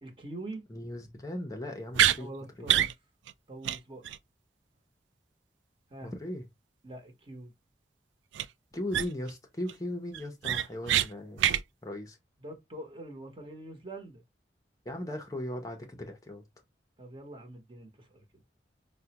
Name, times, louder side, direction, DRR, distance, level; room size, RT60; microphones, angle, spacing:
voice 1, 0.0-0.6 2.2-2.9 3.5-4.0 5.9-6.1 6.8-7.5 12.4-14.2 17.0-18.4, right 2 dB, 30° right, 0.9 m, -44 dB
voice 2, 0.7-2.3 2.6-2.7 6.0-6.4 8.7-11.5 11.8-12.2 14.8-16.4, left 1 dB, 20° left, 0.6 m, -38 dB
sound 1, 1.9-2.2 2.7-2.9 3.3-3.4 3.6-3.8 4.0-4.2 8.3-8.4 8.9-9.3 9.7-9.8 10.1-11.1 11.4-11.6, right 11 dB, 85° right, 0.3 m, -25 dB
4.7 x 2.1 x 2.8 m
head